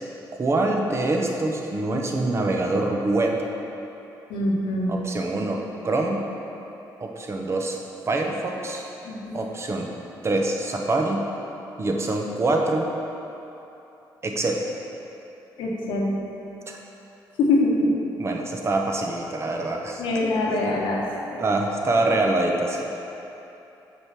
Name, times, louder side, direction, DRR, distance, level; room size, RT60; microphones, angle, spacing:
voice 1, 0.4-3.4 4.9-6.2 7.0-7.8 8.1-8.8 9.3-9.9 10.2-11.2 11.8-12.9 14.2-14.6 18.2-20.0 21.4-22.9, right 2 dB, 35° right, 1 dB, 0.9 m, -25 dB
voice 2, 4.3-5.0 9.0-9.4 15.6-16.2 17.4-17.9 20.0-21.0 21.3-21.4, left 2 dB, 90° left, -2 dB, 1.1 m, -23 dB
6.2 x 4.8 x 5.9 m, 3.0 s
cardioid pair, 90°, 8 cm